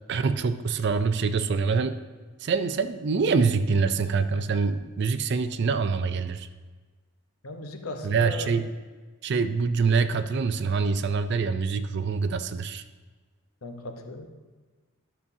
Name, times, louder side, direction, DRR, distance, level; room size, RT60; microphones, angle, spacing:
voice 1, 0.1-2.0 2.4-6.5 8.0-8.7 9.2-12.8, right 5 dB, 50° right, 11 dB, 0.4 m, -25 dB
voice 2, 7.4-8.6 13.6-14.3, left 2 dB, 75° left, 5 dB, 0.9 m, -37 dB
12.0 x 6.9 x 2.7 m, 1.4 s
head